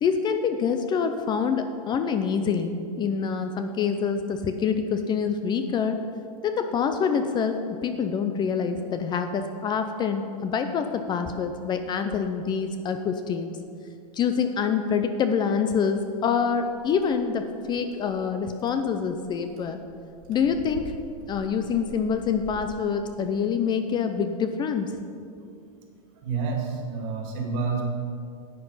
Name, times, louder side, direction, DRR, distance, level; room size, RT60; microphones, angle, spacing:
voice 1, 0.0-6.0 6.4-13.6 14.1-19.8 20.3-20.9 21.3-24.9, left 6 dB, 20° left, 7 dB, 0.5 m, -26 dB
sound 1, 16.5-22.8, right 2 dB, 70° right, 2.8 m, -47 dB
voice 2, 26.2-27.8, right 5 dB, 50° right, 2 dB, 2.2 m, -29 dB
10.5 x 7.7 x 5.6 m, 2.4 s
supercardioid pair, 135°, 20 cm